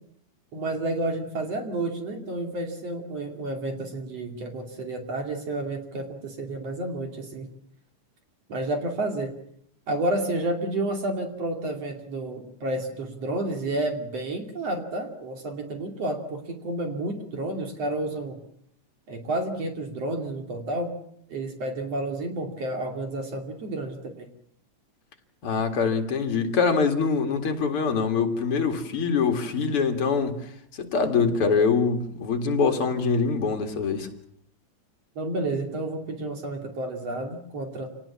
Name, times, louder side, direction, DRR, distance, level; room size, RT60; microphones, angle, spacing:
voice 1, 0.5-7.5 8.5-9.3 9.9-18.4 19.1-20.9 21.3-24.3 35.2-37.9, right 2 dB, 60° right, 4 dB, 3.6 m, -30 dB
voice 2, 25.4-30.4 30.8-34.1, left 5 dB, 50° left, 5 dB, 3.0 m, -24 dB
27.5 x 19.0 x 7.2 m, 0.68 s
omnidirectional pair, 3.3 m